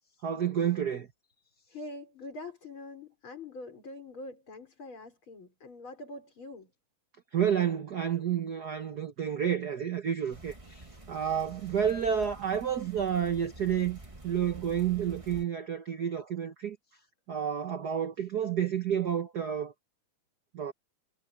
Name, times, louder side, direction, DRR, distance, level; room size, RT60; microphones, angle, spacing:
voice 1, 0.2-1.1 7.3-14.0 14.2-16.8 17.3-19.7 20.5-20.7, right 8 dB, 55° right, 1.1 m, -30 dB
voice 2, 1.7-6.7, left 2 dB, 45° left, 6.4 m, -44 dB
sound 1, 10.3-15.4, right 2 dB, 20° right, 0.8 m, -48 dB
omnidirectional pair, 3.3 m